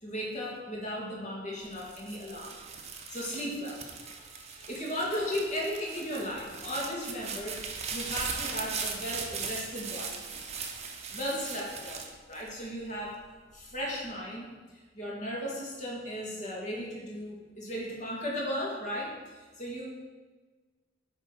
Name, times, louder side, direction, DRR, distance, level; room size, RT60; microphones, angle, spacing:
voice 1, 0.0-2.6 3.1-7.6 7.9-10.2 11.1-13.2 13.5-14.5 14.9-19.9, equal, 40° left, -3 dB, 1.9 m, -36 dB
sound 1, 1.6-13.0 13.5-14.1, right 5 dB, 35° right, 0.8 m, -39 dB
9.0 x 3.5 x 5.6 m, 1.4 s
head